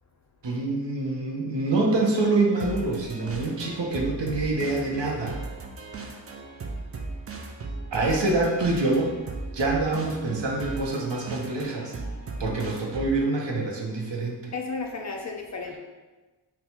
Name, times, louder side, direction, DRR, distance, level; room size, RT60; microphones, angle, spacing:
voice 1, 0.4-5.4 7.9-9.1 9.5-11.9 12.4-14.5, right 2 dB, 65° right, -1 dB, 0.8 m, -26 dB
sound 1, 2.6-13.3, right 3 dB, 30° right, 0.4 m, -37 dB
voice 2, 14.5-15.8, left 4 dB, 40° left, 1 dB, 0.4 m, -33 dB
3.9 x 2.2 x 2.9 m, 1.2 s
cardioid pair, 55°, 47 cm